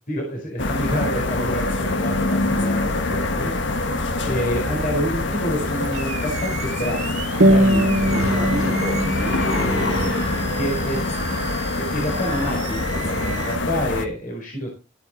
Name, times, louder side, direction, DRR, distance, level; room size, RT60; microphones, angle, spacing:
voice 1, 0.1-3.5 4.2-7.2 7.5-11.0 11.7-14.7, equal, 45° left, 0 dB, 4.4 m, -28 dB
sound 1, 0.6-14.1, left 2 dB, 80° left, 1.6 m, -25 dB
Animal, 5.6-13.5, right 6 dB, 35° right, 1.5 m, -35 dB
sound 2, 7.4-12.4, equal, 75° right, 1.3 m, -23 dB
13.5 x 9.4 x 4.1 m, 0.30 s
head